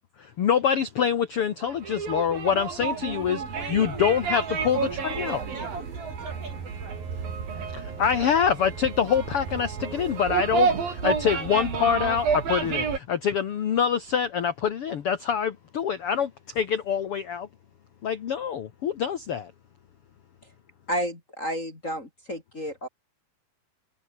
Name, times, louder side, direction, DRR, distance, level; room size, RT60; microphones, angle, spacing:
voice 1, 0.2-3.4 3.7-5.4 7.7-17.5 18.0-19.5, left 8 dB, 55° left, 1.8 m, -25 dB
sound 1, 1.6-13.0, right 6 dB, 75° right, 6.3 m, -30 dB
voice 2, 3.5-7.5, right 3 dB, 40° right, 7.8 m, -42 dB
voice 3, 20.9-22.9, equal, 20° left, 3.7 m, -31 dB
omnidirectional pair, 4.1 m